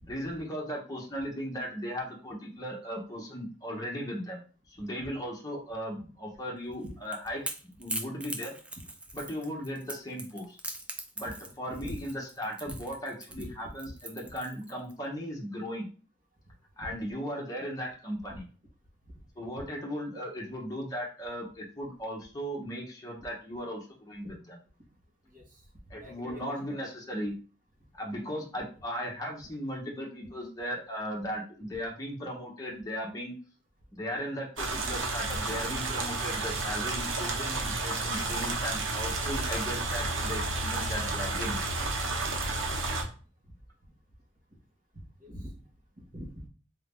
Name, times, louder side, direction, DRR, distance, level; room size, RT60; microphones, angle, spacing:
voice 1, 0.1-4.4 4.8-8.6 9.1-10.6 11.2-15.9 16.8-18.5 19.4-24.6 25.9-27.3 27.9-33.4 33.9-41.6, equal, 20° left, -2 dB, 1.0 m, -37 dB
Crackle / Crack, 6.7-14.9, right 2 dB, 5° right, 0.3 m, -40 dB
voice 2, 26.0-26.5 45.2-45.5 46.0-46.5, equal, 45° right, -2 dB, 1.5 m, -43 dB
sound 1, 34.6-43.0, right 3 dB, 85° right, 0.8 m, -31 dB
4.0 x 2.8 x 3.6 m, 0.37 s
head